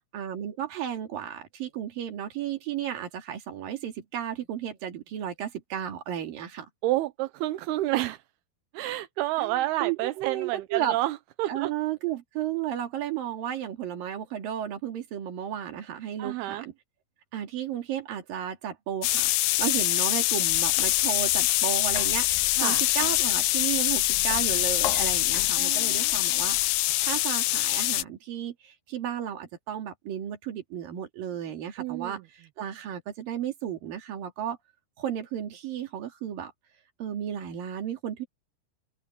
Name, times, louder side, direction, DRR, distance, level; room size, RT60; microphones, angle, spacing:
voice 1, 0.1-6.7 9.4-11.0 11.5-16.7 17.3-22.3 22.6-26.6 27.0-34.6 35.0-36.5 37.0-38.3, right 10 dB, 60° right, 4.1 m, -33 dB
voice 2, 6.8-8.2 8.7-11.7 16.2-16.7 22.6-22.8 25.6-26.1 31.8-32.2, right 16 dB, 80° right, 2.7 m, -29 dB
sound 1, 19.0-28.0, left 18 dB, 80° left, 2.6 m, -24 dB
open air
omnidirectional pair, 4.7 m